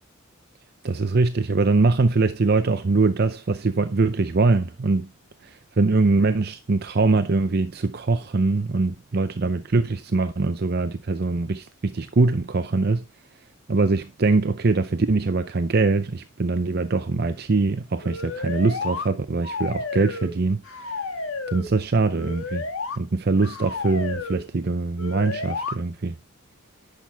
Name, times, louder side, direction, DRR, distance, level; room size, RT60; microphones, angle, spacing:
voice 1, 0.8-5.1 5.4-13.0 13.7-21.0 21.5-22.7 23.0-26.1, right 3 dB, 50° right, 0.6 m, -22 dB
sound 1, 18.0-19.1 19.4-20.4 20.6-21.7 22.2-23.0 23.4-24.4 25.0-25.8, left 3 dB, 75° left, 1.5 m, -31 dB
11.0 x 5.9 x 3.5 m
head